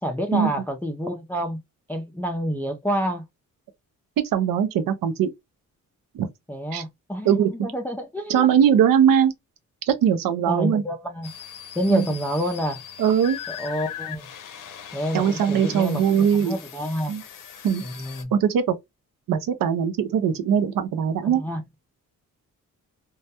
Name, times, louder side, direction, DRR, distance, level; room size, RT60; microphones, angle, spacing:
voice 1, 0.0-1.6 1.9-3.2 6.5-8.5 10.5-11.3 11.8-12.8 13.5-14.3 14.9-17.1 17.8-18.3 21.3-21.6, equal, 5° left, 0.3 m, -28 dB
voice 2, 4.3-5.3 6.1-6.3 6.7-6.8 7.2-7.5 8.3-9.3 9.9-10.8 11.9-12.1 13.0-13.4 15.1-16.6 17.1-17.2 17.6-17.8 18.3-18.7 19.3-21.4, right 8 dB, 90° right, 0.6 m, -20 dB
sound 1, 11.2-18.2, left 9 dB, 75° left, 0.6 m, -40 dB
2.2 x 2.1 x 2.7 m
cardioid pair, 90°, 33 cm